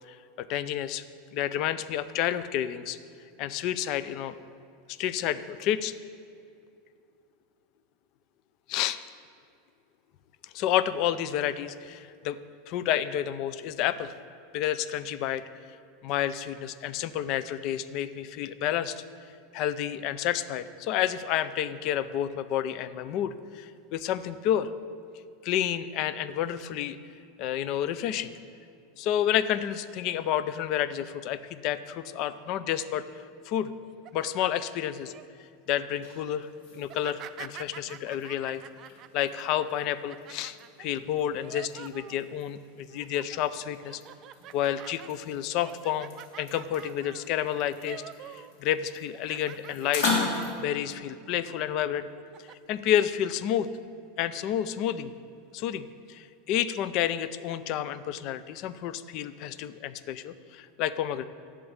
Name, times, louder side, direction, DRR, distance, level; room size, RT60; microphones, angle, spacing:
voice 1, 0.1-1.0 1.3-3.0 3.4-4.4 4.9-5.9 8.7-9.0 10.5-12.4 12.7-14.1 14.5-15.4 16.0-19.0 19.5-24.7 25.4-27.0 27.4-28.3 29.0-33.0 33.5-33.7 34.1-35.1 35.7-38.6 39.1-44.0 44.5-50.1 50.6-52.1 52.7-53.7 54.2-55.1 55.5-61.2, left 11 dB, 45° left, 15 dB, 0.5 m, -30 dB
sound 1, 33.8-35.3 35.7-36.0 36.8-42.5 42.9-43.4 43.8-48.5 48.8-50.7 51.1-51.3 52.0-52.5, right 12 dB, 35° right, 0.4 m, -47 dB
sound 2, 35.7-50.5, left 3 dB, 70° left, 3.2 m, -38 dB
11.0 x 8.1 x 9.6 m, 2.5 s
supercardioid pair, 155°, 0 cm